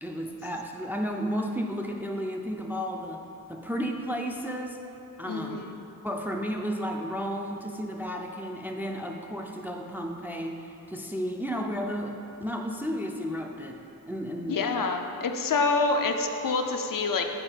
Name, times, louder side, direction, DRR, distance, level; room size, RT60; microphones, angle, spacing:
voice 1, 0.0-3.2 3.5-4.8 5.2-5.6 6.0-14.6, equal, 5° right, 2 dB, 0.4 m, -33 dB
voice 2, 5.3-5.7 14.5-17.2, left 3 dB, 65° left, 4 dB, 0.5 m, -27 dB
6.8 x 4.6 x 4.4 m, 2.9 s
wide cardioid pair, 90°, 36 cm